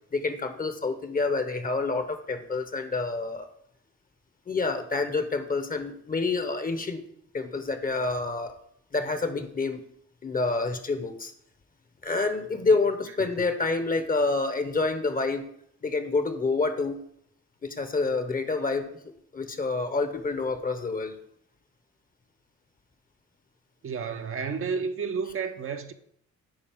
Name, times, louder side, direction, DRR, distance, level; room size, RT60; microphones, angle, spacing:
voice 1, 0.1-3.5 4.5-7.0 7.3-8.5 8.9-9.8 10.2-11.3 12.0-15.5 15.8-17.0 17.6-18.9 19.3-21.1, left 3 dB, 30° left, 1.0 m, -28 dB
voice 2, 23.8-25.9, right 5 dB, 45° right, 0.7 m, -31 dB
8.9 x 5.1 x 3.6 m
cardioid pair, 90°, 30 cm